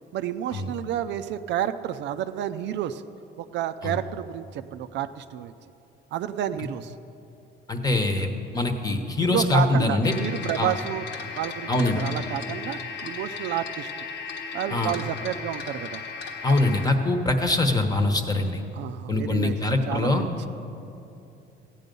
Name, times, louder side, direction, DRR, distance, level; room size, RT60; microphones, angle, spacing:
voice 1, 0.1-3.0 3.4-5.5 6.1-6.9 9.2-11.1 11.4-13.9 14.5-16.0 16.5-16.6 18.7-19.6 19.9-20.5, right 10 dB, 70° right, 11 dB, 0.5 m, -30 dB
voice 2, 7.7-10.1 10.6-10.7 11.7-12.0 14.7-14.9 16.4-18.6 19.1-20.2, left 2 dB, 20° left, 6 dB, 1.0 m, -23 dB
sound 1, 10.0-16.9, left 5 dB, 75° left, 1.3 m, -36 dB
15.0 x 9.2 x 5.3 m, 2.8 s
cardioid pair, 125°, 19 cm